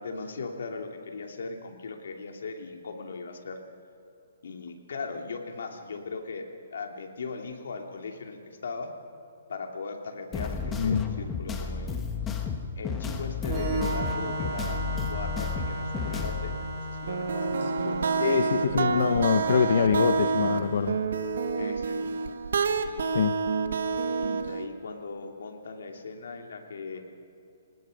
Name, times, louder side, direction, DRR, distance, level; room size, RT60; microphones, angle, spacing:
voice 1, 0.0-3.6 4.4-8.9 9.5-12.0 12.8-19.0 21.6-22.3 22.7-23.2 24.1-27.0, left 4 dB, 75° left, 3 dB, 2.8 m, -39 dB
sound 1, 10.3-16.6, left 5 dB, 10° left, 1.3 m, -32 dB
voice 2, 10.7-11.3 18.2-21.0 23.1-23.3, left 7 dB, 55° left, 8 dB, 0.9 m, -24 dB
Organ, 13.4-21.0, right 2 dB, 35° right, 4.2 m, -36 dB
sound 2, 17.1-24.7, right 5 dB, 70° right, 1.3 m, -28 dB
25.5 x 19.5 x 5.3 m, 2.7 s
hypercardioid pair, 170°, 0 cm